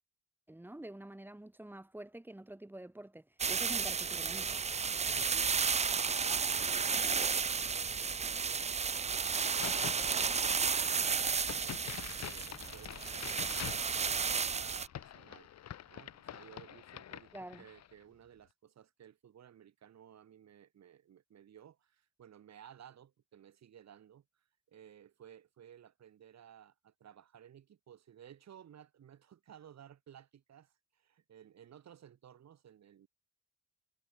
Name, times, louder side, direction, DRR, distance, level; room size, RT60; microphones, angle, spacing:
voice 1, 0.5-4.5 17.3-17.6, right 1 dB, 5° right, 1.4 m, -47 dB
sound 1, 3.4-14.9, right 5 dB, 20° right, 0.5 m, -33 dB
voice 2, 4.9-15.5 15.8-24.2 24.7-33.1, right 9 dB, 60° right, 5.1 m, -57 dB
Crack, 9.4-17.9, left 10 dB, 60° left, 1.7 m, -47 dB
cardioid pair, 90°, 30 cm